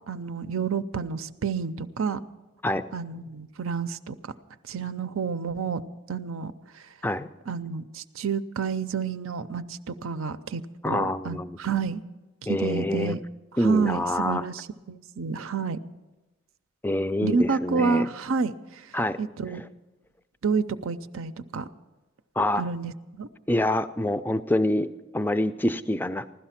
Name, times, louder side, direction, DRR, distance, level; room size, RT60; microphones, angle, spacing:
voice 1, 0.1-2.2 2.9-4.3 4.7-5.8 6.1-6.9 7.5-12.0 12.4-13.2 13.6-15.8 17.2-19.6 20.4-21.7 22.5-23.3, right 5 dB, 85° right, 11 dB, 0.6 m, -29 dB
voice 2, 10.8-11.6 12.5-13.2 13.6-14.5 16.8-18.1 18.9-19.2 22.4-22.6 23.5-26.3, left 1 dB, 10° left, 11 dB, 0.4 m, -26 dB
16.0 x 12.0 x 5.8 m, 1.1 s
head